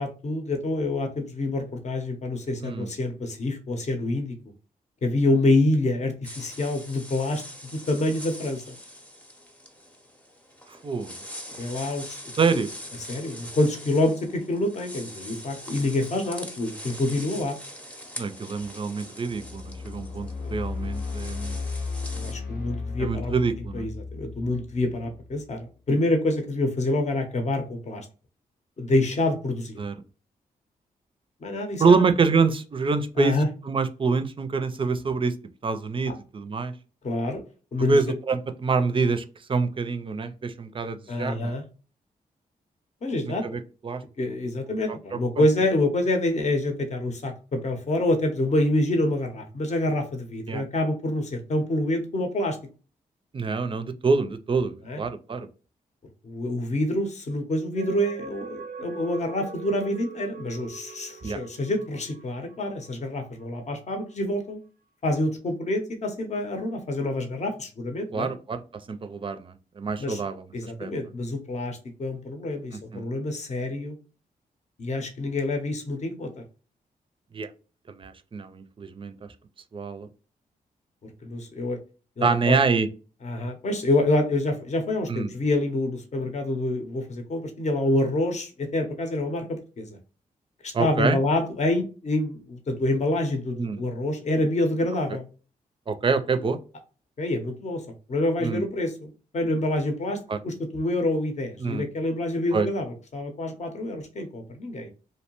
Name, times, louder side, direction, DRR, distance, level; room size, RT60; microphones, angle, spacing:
voice 1, 0.0-4.4 5.0-7.4 7.7-8.7 11.6-12.2 12.5-12.6 13.1-17.6 20.4-20.5 22.1-23.3 23.7-25.6 25.9-28.1 28.8-29.8 31.4-32.0 33.2-33.5 36.1-36.2 37.0-37.4 37.7-38.0 41.1-41.6 43.0-43.4 44.2-52.6 54.9-55.0 56.2-64.6 65.0-68.3 70.0-70.2 70.5-74.0 74.8-76.4 81.2-81.8 82.2-82.6 83.2-89.9 90.6-95.2 97.2-97.8 98.1-104.9, left 1 dB, 45° left, 5 dB, 0.7 m, -27 dB
sound 1, 6.2-22.3, equal, 10° left, 0.6 m, -42 dB
voice 2, 10.8-11.1 12.4-12.7 18.2-21.6 23.0-23.9 29.8-29.9 31.8-33.4 33.7-35.3 35.6-36.7 37.9-41.6 43.2-44.0 44.9-45.0 45.4-45.5 50.5-50.6 53.3-55.5 61.2-61.4 68.1-68.6 68.9-70.5 70.8-70.9 72.9-73.1 77.3-77.5 77.9-79.1 79.7-80.1 82.2-82.9 85.1-85.3 90.7-91.2 93.6-93.8 95.9-96.6 98.4-98.6 100.3-100.4 101.6-101.8 102.5-102.7, right 4 dB, 35° right, 10 dB, 0.4 m, -26 dB
sound 2, 19.3-25.5, left 4 dB, 90° left, 0.8 m, -35 dB
sound 3, 57.8-63.5 63.9-64.0, right 5 dB, 90° right, 0.4 m, -42 dB
2.7 x 2.1 x 3.0 m, 0.35 s
cardioid pair, 60°, 16 cm